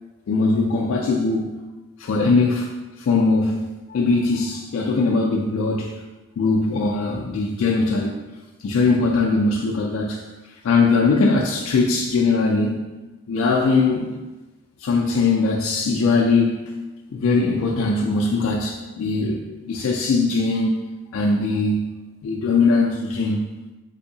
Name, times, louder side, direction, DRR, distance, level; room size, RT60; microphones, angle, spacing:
voice 1, 0.3-1.6 2.0-2.7 3.0-6.0 6.4-8.1 8.6-10.2 10.6-12.8 13.3-14.2 14.8-16.7 17.1-20.8 21.1-21.9 22.2-23.4, left 3 dB, 85° left, -1 dB, 0.3 m, -20 dB
3.4 x 2.7 x 2.7 m, 1.1 s
head